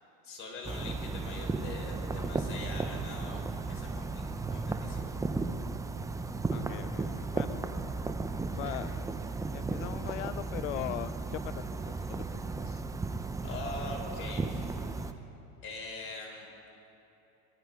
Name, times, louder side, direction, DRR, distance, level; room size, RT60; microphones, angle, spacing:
voice 1, 0.2-5.1 13.4-14.8 15.6-16.5, left 2 dB, 35° left, 0 dB, 4.1 m, -43 dB
sound 1, 0.6-15.1, right 3 dB, 10° right, 0.5 m, -35 dB
voice 2, 6.5-7.7 8.5-9.1 9.5-12.8, left 15 dB, 90° left, 14 dB, 0.5 m, -41 dB
22.0 x 12.0 x 5.2 m, 3.0 s
supercardioid pair, 120°, 36 cm